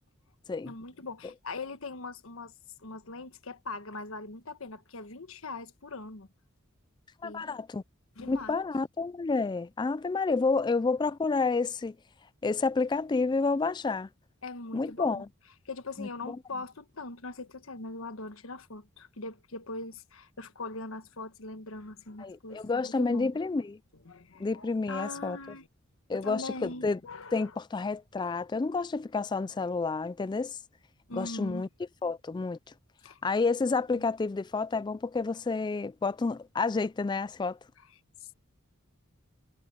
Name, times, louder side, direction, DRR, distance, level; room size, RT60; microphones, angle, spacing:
voice 1, 0.6-2.5 2.8-6.3 7.2-7.6 8.2-8.6 14.4-15.3 15.6-23.4 24.0-25.7 26.1-27.5 31.1-31.6 33.0-33.2 33.9-34.0 38.2-38.3, left 3 dB, 75° left, 1.3 m, -41 dB
voice 2, 7.2-7.8 8.2-12.0 12.4-14.1 14.7-15.3 16.0-16.4 22.2-23.8 24.4-25.4 26.1-27.0 27.3-30.6 31.1-31.7 32.0-32.6 33.2-37.6, left 4 dB, 20° left, 0.3 m, -29 dB
head